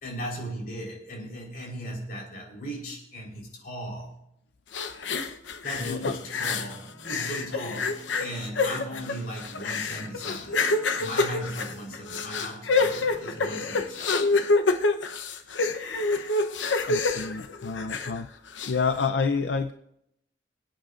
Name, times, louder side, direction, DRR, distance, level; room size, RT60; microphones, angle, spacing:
voice 1, 0.0-4.2 5.6-10.6 11.0-14.1, equal, 50° left, -3 dB, 4.0 m, -37 dB
sound 1, 4.7-6.8 7.0-18.2 18.5-18.7, left 3 dB, 90° left, 0.9 m, -27 dB
voice 2, 5.8-6.1 16.9-18.3 18.7-19.7, left 5 dB, 70° left, 8 dB, 0.5 m, -28 dB
sound 2, 6.2-14.5, right 1 dB, 60° right, 4.4 m, -52 dB
26.5 x 8.9 x 2.5 m, 0.77 s
head